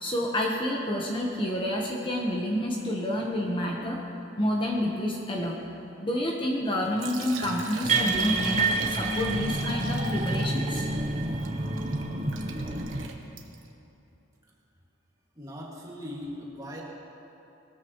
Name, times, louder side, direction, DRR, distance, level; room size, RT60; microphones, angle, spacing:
voice 1, 0.0-4.0 4.4-5.6 6.0-10.9, left 1 dB, 25° left, -2 dB, 1.0 m, -29 dB
Liquid, 6.8-13.7, right 3 dB, 80° right, 1.2 m, -40 dB
sound 1, 7.8-13.1, right 2 dB, 35° right, 0.8 m, -28 dB
voice 2, 15.4-16.8, left 1 dB, 20° right, -4 dB, 2.0 m, -39 dB
20.5 x 13.5 x 3.1 m, 2.9 s
head